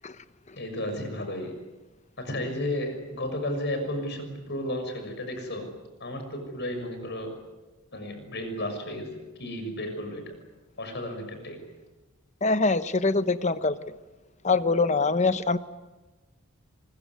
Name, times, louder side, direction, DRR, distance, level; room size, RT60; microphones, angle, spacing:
voice 1, 0.6-1.5 2.2-5.7 6.0-7.3 7.9-10.4 10.8-11.6, left 1 dB, 50° left, 6 dB, 6.3 m, -33 dB
voice 2, 12.4-13.8 14.4-15.6, left 3 dB, 30° left, 12 dB, 1.0 m, -23 dB
24.0 x 22.0 x 9.5 m, 1.1 s
head